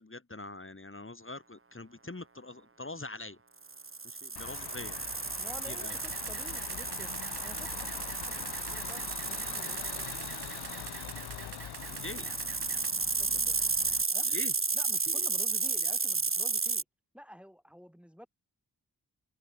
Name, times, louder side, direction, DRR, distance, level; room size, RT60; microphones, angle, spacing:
voice 1, 0.0-3.4 4.0-5.1 5.6-6.0 11.8-12.3 14.3-14.5 15.1-15.3, left 2 dB, 30° left, 2.7 m, -44 dB
sound 1, 3.7-16.8, right 4 dB, 35° right, 1.4 m, -33 dB
sound 2, 4.4-14.0, left 11 dB, 85° left, 0.6 m, -44 dB
voice 2, 5.4-10.2 13.0-13.6 14.1-14.3 14.7-16.8 17.1-18.3, equal, 5° right, 4.1 m, -51 dB
Camera, 5.9-12.9, right 7 dB, 90° right, 1.6 m, -46 dB
cardioid pair, 45°, 38 cm